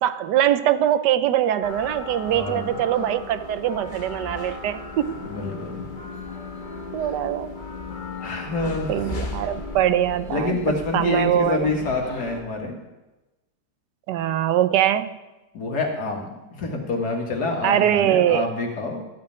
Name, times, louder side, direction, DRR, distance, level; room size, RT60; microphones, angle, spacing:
voice 1, 0.0-5.1 6.9-7.5 8.9-10.6 10.9-11.7 14.1-15.2 17.6-18.5, right 11 dB, 85° right, 13 dB, 1.3 m, -22 dB
sound 1, 1.6-12.4, left 3 dB, 35° left, 1.1 m, -36 dB
voice 2, 2.2-2.8 5.3-5.8 8.2-9.2 10.3-12.8 15.5-19.0, left 3 dB, 70° left, 1 dB, 2.3 m, -27 dB
13.0 x 5.3 x 8.7 m, 1.1 s
omnidirectional pair, 1.8 m